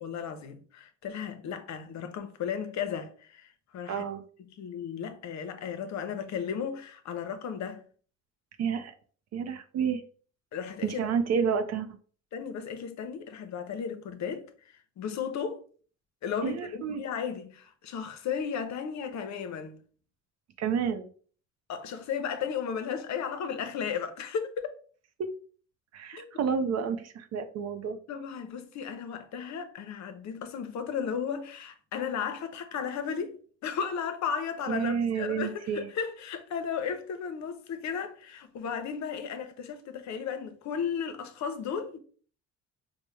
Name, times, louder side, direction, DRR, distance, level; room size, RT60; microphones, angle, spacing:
voice 1, 0.0-4.0 4.6-7.8 10.5-11.0 12.3-14.5 15.0-15.6 16.2-19.8 21.7-24.7 26.1-26.3 28.1-42.0, left 7 dB, 65° left, 0.6 m, -35 dB
voice 2, 3.9-4.2 8.6-8.9 9.3-10.0 10.8-11.9 16.4-17.0 20.6-21.1 25.2-25.3 25.9-28.0 34.7-35.9, right 6 dB, 60° right, 0.5 m, -30 dB
4.5 x 2.1 x 3.1 m
cardioid pair, 90°, 30 cm